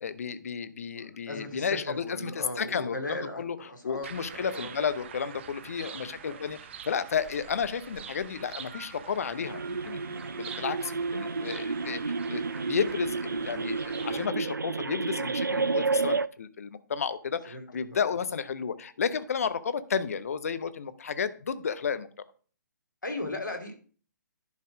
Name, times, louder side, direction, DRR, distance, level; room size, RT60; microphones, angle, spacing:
voice 1, 0.0-3.6 3.8-6.6 6.9-22.1, left 6 dB, 50° left, 14 dB, 0.7 m, -32 dB
voice 2, 1.0-4.7 5.9-6.5 17.5-17.6 17.9-18.2 23.0-23.7, left 2 dB, 75° left, 4 dB, 2.5 m, -38 dB
sound 1, 4.0-14.3, right 8 dB, 35° right, 0.7 m, -45 dB
sound 2, 9.4-16.3, right 4 dB, 80° right, 0.4 m, -31 dB
11.0 x 4.2 x 4.9 m, 0.41 s
figure-of-eight pair, 135°, 10 cm